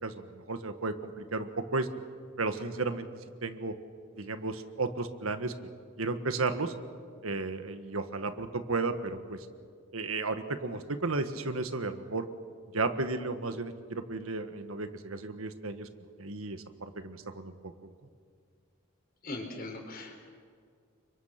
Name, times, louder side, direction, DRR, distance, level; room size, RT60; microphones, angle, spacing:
voice 1, 0.0-1.9 2.4-3.1 3.4-3.7 4.2-5.5 6.0-6.7 7.2-9.4 9.9-12.3 12.7-15.9 16.2-17.7, right 3 dB, 85° right, 9 dB, 1.6 m, -33 dB
voice 2, 19.2-20.2, left 2 dB, 45° left, 2 dB, 4.8 m, -40 dB
30.0 x 24.5 x 5.9 m, 2.1 s
head